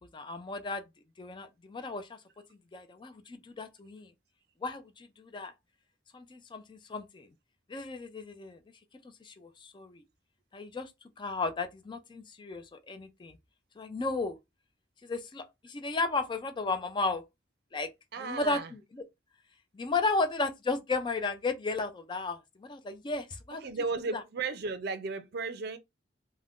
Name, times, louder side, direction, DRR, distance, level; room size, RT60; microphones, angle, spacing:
voice 1, 0.1-0.8 1.2-2.2 2.5-4.1 4.6-5.5 6.1-7.3 7.7-8.6 9.0-10.0 10.5-10.9 11.2-13.4 13.8-14.4 15.0-17.2 17.7-17.9 18.2-19.0 19.7-23.6 24.1-24.2, left 3 dB, 25° left, 0.3 m, -34 dB
voice 2, 18.1-18.7 23.6-25.8, right 4 dB, 60° right, 0.5 m, -34 dB
2.4 x 2.1 x 3.5 m
head